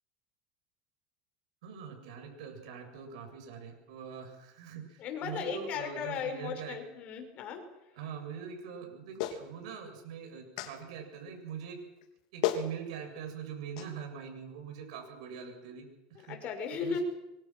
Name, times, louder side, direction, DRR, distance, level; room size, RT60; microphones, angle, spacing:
voice 1, 1.6-6.8 7.9-11.8 12.3-15.9 16.2-16.4 16.7-17.0, right 7 dB, 80° right, 4 dB, 7.7 m, -43 dB
voice 2, 5.0-7.6 16.3-17.0, left 6 dB, 40° left, 5 dB, 5.8 m, -36 dB
Clapping, 9.2-9.4 10.6-10.7 12.0-12.1 12.4-12.7 13.8-13.9, left 11 dB, 75° left, 3.3 m, -31 dB
27.0 x 24.5 x 6.2 m, 0.94 s
supercardioid pair, 140°, 4 cm